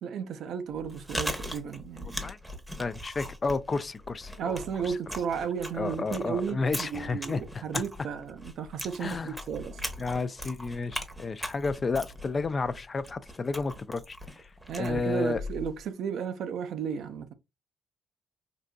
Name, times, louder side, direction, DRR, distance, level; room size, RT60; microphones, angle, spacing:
voice 1, 0.0-2.3 4.4-9.8 14.7-17.3, right 7 dB, 75° right, 0.5 m, -34 dB
Chewing mastication, 0.7-15.8, equal, 5° right, 0.9 m, -40 dB
voice 2, 2.8-4.6 4.9-5.0 5.8-7.8 9.0-9.3 10.0-14.5 14.8-15.4, left 4 dB, 35° left, 0.3 m, -31 dB
3.8 x 2.6 x 2.2 m
cardioid pair, 90°, 0 cm